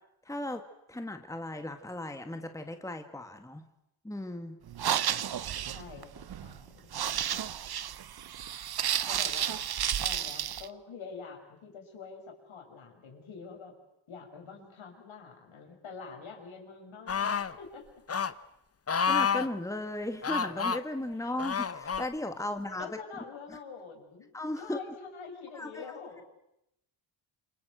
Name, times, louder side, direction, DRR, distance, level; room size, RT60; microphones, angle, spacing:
voice 1, 0.2-0.6 0.9-3.6 4.0-4.6 19.1-22.9 23.5-23.6 24.3-24.8 25.5-26.0, left 1 dB, 5° left, 6 dB, 1.8 m, -36 dB
sound 1, 4.7-10.7, right 10 dB, 50° right, 0.9 m, -32 dB
voice 2, 5.6-7.4 9.1-9.6 10.0-13.7 14.1-17.9 21.2-21.3 22.8-24.3 24.6-26.2, left 5 dB, 70° left, 2 dB, 6.9 m, -46 dB
sound 2, 17.1-17.5 18.1-18.3 18.9-19.5 20.2-20.8 21.4-22.1 22.8-22.9, left 6 dB, 30° left, 1.0 m, -29 dB
28.0 x 23.5 x 8.0 m, 0.83 s
cardioid pair, 90°, 49 cm